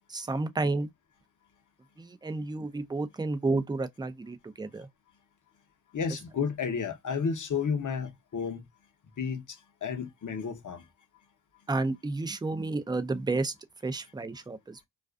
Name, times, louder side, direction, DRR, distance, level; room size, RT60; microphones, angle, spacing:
voice 1, 0.1-0.9 2.0-4.9 11.7-13.5 13.8-14.8, right 3 dB, 10° right, 0.4 m, -31 dB
voice 2, 5.9-8.6 9.2-10.9, left 6 dB, 45° left, 0.8 m, -32 dB
2.4 x 2.3 x 2.2 m
cardioid pair, 70°, 44 cm